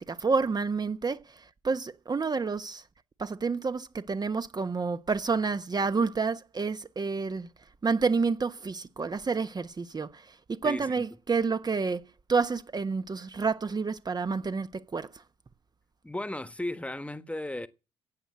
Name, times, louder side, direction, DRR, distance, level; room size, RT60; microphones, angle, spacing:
voice 1, 0.0-2.8 3.2-7.5 7.8-12.0 12.3-15.1, right 4 dB, 30° right, 1.1 m, -29 dB
voice 2, 10.6-11.0 16.0-17.7, left 1 dB, 10° left, 1.4 m, -35 dB
15.5 x 9.3 x 7.8 m
figure-of-eight pair, 45°, 14 cm